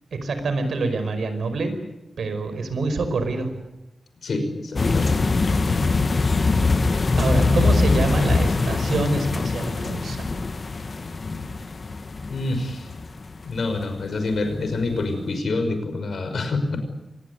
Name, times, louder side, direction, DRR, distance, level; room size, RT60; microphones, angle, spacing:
voice 1, 0.1-1.7 2.2-3.5 7.2-10.3, right 3 dB, 85° right, 9 dB, 5.2 m, -26 dB
voice 2, 4.2-5.4 12.3-12.9 13.4-16.8, left 2 dB, 65° left, 7 dB, 5.8 m, -27 dB
sound 1, 4.8-13.8 14.3-14.6 14.8-15.0, left 3 dB, 40° left, 1.1 m, -22 dB
25.0 x 20.0 x 9.8 m, 0.95 s
wide cardioid pair, 160°, 0 cm